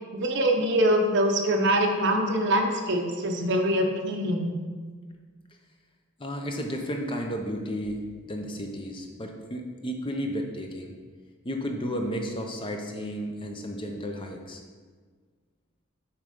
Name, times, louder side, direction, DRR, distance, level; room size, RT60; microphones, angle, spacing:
voice 1, 0.1-4.6, right 1 dB, 55° right, 3 dB, 0.7 m, -24 dB
voice 2, 6.2-10.9 11.4-14.6, equal, 25° left, 3 dB, 0.6 m, -33 dB
7.0 x 3.1 x 5.1 m, 1.5 s
head